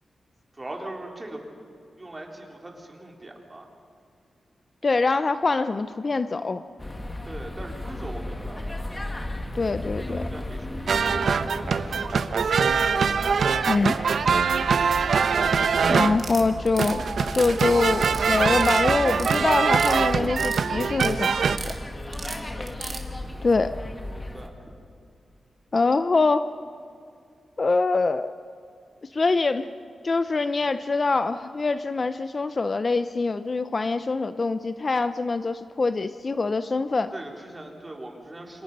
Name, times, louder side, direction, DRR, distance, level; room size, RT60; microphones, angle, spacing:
voice 1, 0.5-1.4 2.0-3.7 7.3-8.9 9.9-11.0 11.3-11.7 23.2-23.4 24.2-24.7 37.1-38.6, right 1 dB, 20° right, 1 dB, 3.5 m, -41 dB
voice 2, 4.8-6.6 9.5-10.2 13.7-14.0 15.9-17.0 17.3-21.7 23.4-23.8 25.7-26.5 27.6-28.4 29.1-29.7 30.0-37.1, left 3 dB, 35° left, 11 dB, 0.6 m, -24 dB
sound 1, 6.8-24.5, left 1 dB, 20° left, 1.8 m, -35 dB
sound 2, 10.9-16.2 16.8-21.6, right 6 dB, 65° right, 0.9 m, -23 dB
sound 3, 16.2-16.9 17.3-18.2 18.5-18.8 19.1-20.0 20.2-21.1 21.4-21.8 22.1-23.0, right 4 dB, 50° right, 2.3 m, -36 dB
28.5 x 25.5 x 5.4 m, 2.4 s
wide cardioid pair, 145°, 0 cm